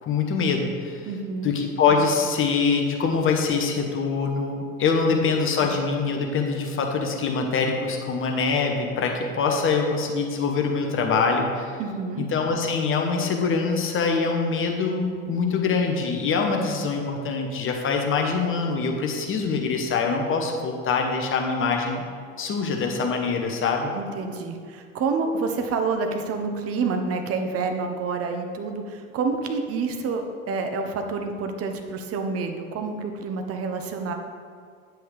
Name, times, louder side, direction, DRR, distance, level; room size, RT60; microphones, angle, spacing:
voice 1, 0.0-1.1 1.4-11.8 12.2-22.0 22.4-23.9, left 4 dB, 30° left, 2 dB, 1.3 m, -24 dB
voice 2, 1.1-1.5 5.1-5.2 11.8-12.3 23.9-30.2 30.5-34.1, right 4 dB, 35° right, 5 dB, 1.0 m, -28 dB
9.0 x 7.6 x 3.4 m, 2.1 s
figure-of-eight pair, 75°, 39 cm